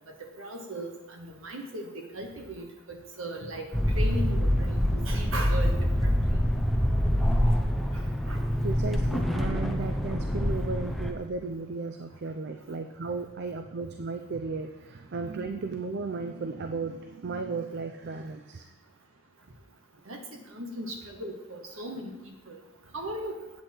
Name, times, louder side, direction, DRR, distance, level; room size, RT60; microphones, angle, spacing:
voice 1, 0.4-1.9 2.1-3.7 3.9-5.7 6.0-6.4 7.9-8.4 20.1-20.2 20.5-22.1 22.5-22.6 22.9-23.4, right 1 dB, 65° right, 3 dB, 1.4 m, -37 dB
sound 1, 3.7-11.1, equal, ahead, 0.6 m, -26 dB
voice 2, 8.6-18.7, right 4 dB, 50° right, 6 dB, 0.4 m, -35 dB
8.3 x 7.9 x 4.4 m, 0.99 s
head